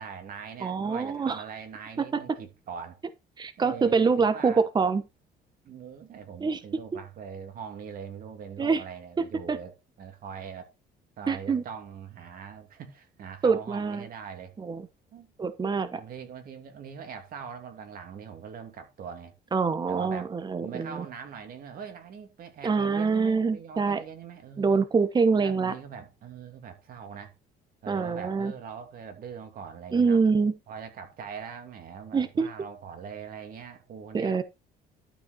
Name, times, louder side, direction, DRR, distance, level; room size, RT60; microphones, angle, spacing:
voice 1, 0.0-3.0 3.6-4.6 5.6-10.7 11.2-14.6 15.1-15.3 15.9-19.3 19.9-20.3 20.6-24.8 25.3-27.3 27.8-30.2 30.7-34.4, right 7 dB, 60° right, 2.9 m, -42 dB
voice 2, 0.6-1.4 2.1-2.2 3.4-5.0 6.4-6.6 8.6-8.8 9.2-9.6 11.3-11.6 13.4-14.1 14.6-14.8 15.4-16.0 19.5-21.0 22.6-24.0 24.6-25.7 27.9-28.5 29.9-30.5 32.1-32.5 34.1-34.4, right 5 dB, 25° right, 1.2 m, -25 dB
12.0 x 5.2 x 4.3 m
cardioid pair, 110°, 17 cm